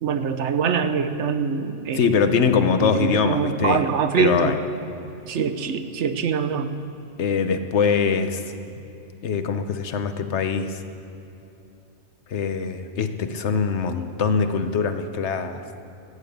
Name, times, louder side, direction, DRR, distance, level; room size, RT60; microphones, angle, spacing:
voice 1, 0.0-2.1 2.8-4.6 5.3-6.7, right 6 dB, 70° right, 9 dB, 1.1 m, -24 dB
voice 2, 1.9-3.8 4.1-4.6 7.2-8.4 9.2-10.8 12.3-15.6, left 5 dB, 65° left, 9 dB, 1.1 m, -23 dB
14.5 x 8.7 x 8.0 m, 2.9 s
omnidirectional pair, 1.3 m